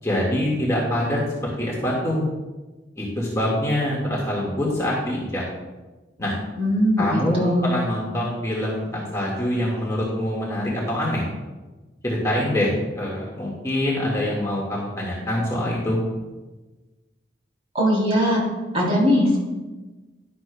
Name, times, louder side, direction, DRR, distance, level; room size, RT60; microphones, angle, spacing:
voice 1, 0.0-2.2 3.0-5.4 6.2-6.3 7.0-11.2 12.0-16.0, left 1 dB, 15° left, -4 dB, 1.8 m, -24 dB
voice 2, 6.6-7.9 17.7-18.4 18.7-19.4, equal, 30° right, -4 dB, 3.3 m, -20 dB
12.0 x 11.0 x 2.3 m, 1.2 s
head